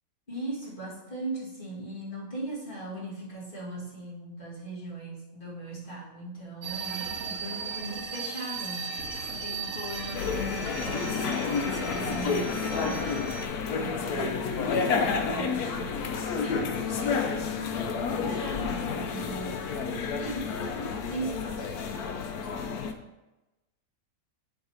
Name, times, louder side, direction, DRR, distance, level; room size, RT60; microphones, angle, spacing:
voice 1, 0.3-21.8, right 1 dB, 35° left, -6 dB, 2.1 m, -39 dB
sound 1, 6.6-13.5, right 4 dB, 60° right, 1.4 m, -37 dB
sound 2, 10.1-22.9, left 5 dB, 80° left, 1.2 m, -30 dB
7.7 x 3.5 x 5.6 m, 1.0 s
omnidirectional pair, 1.6 m